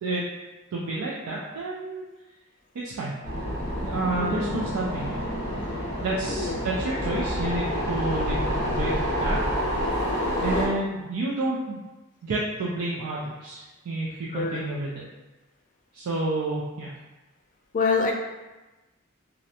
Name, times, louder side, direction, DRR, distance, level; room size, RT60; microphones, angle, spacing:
voice 1, 0.7-2.1 2.8-3.1 3.8-5.2 6.0-9.4 10.4-11.8 12.2-15.0 15.9-16.9, right 2 dB, 85° right, -4 dB, 0.4 m, -30 dB
sound 1, 3.2-10.7, equal, 40° right, 1.0 m, -28 dB
voice 2, 14.3-14.6 17.7-18.1, left 4 dB, 40° left, 1 dB, 0.3 m, -26 dB
2.4 x 2.0 x 2.8 m, 1.1 s
head